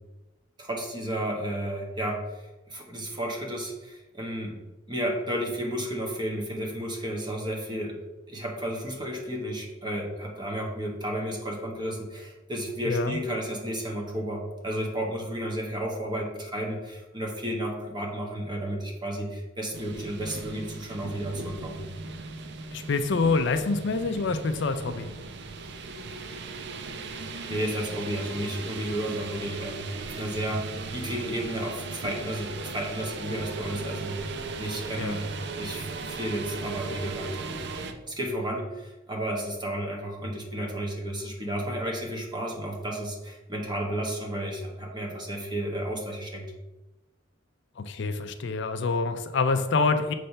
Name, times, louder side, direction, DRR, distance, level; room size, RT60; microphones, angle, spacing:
voice 1, 0.6-4.5 4.9-8.0 8.3-21.8 27.5-30.7 30.9-34.3 34.6-35.3 35.6-37.6 38.1-46.5, right 1 dB, 20° right, 0 dB, 1.2 m, -32 dB
voice 2, 12.8-13.2 22.7-25.1 35.0-35.2 47.8-50.1, left 4 dB, 60° left, 9 dB, 0.5 m, -26 dB
sound 1, 19.7-37.9, right 4 dB, 60° right, 0.6 m, -37 dB
6.5 x 3.3 x 5.6 m, 1.1 s
head